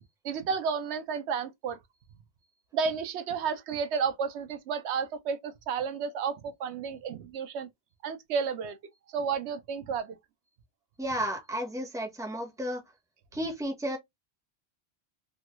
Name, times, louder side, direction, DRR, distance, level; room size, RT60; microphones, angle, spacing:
voice 1, 0.2-1.8 2.7-7.7 8.0-8.8 9.1-10.2, right 6 dB, 90° right, 0.9 m, -32 dB
voice 2, 11.0-12.8 13.3-14.0, equal, 5° right, 0.7 m, -33 dB
3.3 x 2.2 x 2.9 m
omnidirectional pair, 1.1 m